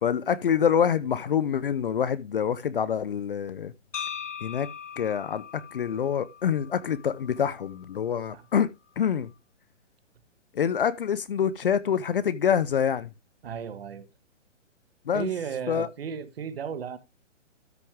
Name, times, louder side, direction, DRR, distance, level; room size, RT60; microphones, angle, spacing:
voice 1, 0.0-3.7 4.4-4.7 5.0-5.4 5.7-9.3 10.5-13.1 15.1-15.3 15.7-15.9, left 8 dB, 45° left, 0.7 m, -26 dB
sound 1, 3.9-8.0, left 8 dB, 75° left, 1.5 m, -40 dB
voice 2, 13.4-14.1 15.1-17.0, right 7 dB, 55° right, 1.5 m, -34 dB
13.0 x 6.0 x 3.5 m
hypercardioid pair, 165°, 36 cm